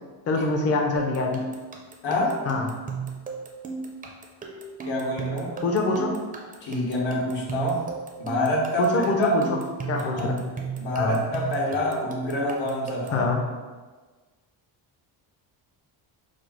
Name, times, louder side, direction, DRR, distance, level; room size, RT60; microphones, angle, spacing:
voice 1, 0.3-1.4 2.5-2.7 5.6-6.2 8.8-9.6 9.9-10.5 10.9-11.2 13.1-13.4, left 3 dB, 35° left, 2 dB, 0.6 m, -24 dB
sound 1, 1.0-13.3, right 4 dB, 20° right, 0.4 m, -35 dB
voice 2, 2.0-2.4 4.8-5.6 6.6-7.9 8.2-9.3 10.0-10.3 10.8-13.2, left 1 dB, 80° left, -4 dB, 1.3 m, -27 dB
5.0 x 2.0 x 4.3 m, 1.4 s
cardioid pair, 125°, 43 cm